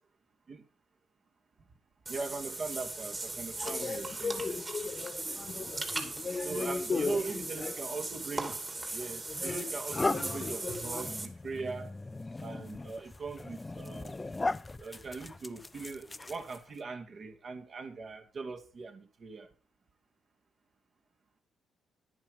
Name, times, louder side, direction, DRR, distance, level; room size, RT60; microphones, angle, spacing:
Water / Bathtub (filling or washing), 2.1-11.3, right 2 dB, 25° right, 2.7 m, -39 dB
voice 1, 2.1-4.6 6.4-8.6 8.9-11.9 12.4-14.2 14.8-19.5, right 4 dB, 45° right, 2.7 m, -40 dB
voice 2, 3.6-7.7 9.3-9.7 9.9-11.0, left 4 dB, 40° left, 1.4 m, -37 dB
sound 1, 8.6-8.8 9.4-16.8, left 2 dB, 20° left, 0.6 m, -38 dB
11.0 x 11.0 x 5.0 m
cardioid pair, 90°, 0 cm